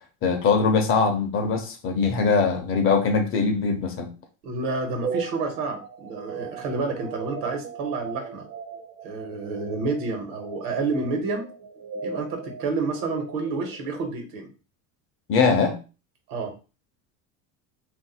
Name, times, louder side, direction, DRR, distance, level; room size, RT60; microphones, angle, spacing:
voice 1, 0.2-4.1 15.3-15.8, left 5 dB, 35° left, 5 dB, 0.5 m, -22 dB
voice 2, 4.4-8.4 9.0-11.4 12.0-14.5 16.3-16.5, right 3 dB, 80° right, 4 dB, 1.1 m, -29 dB
sound 1, 5.0-14.2, right 6 dB, 60° right, 0.7 m, -38 dB
2.5 x 2.2 x 3.9 m, 0.33 s
cardioid pair, 155°, 39 cm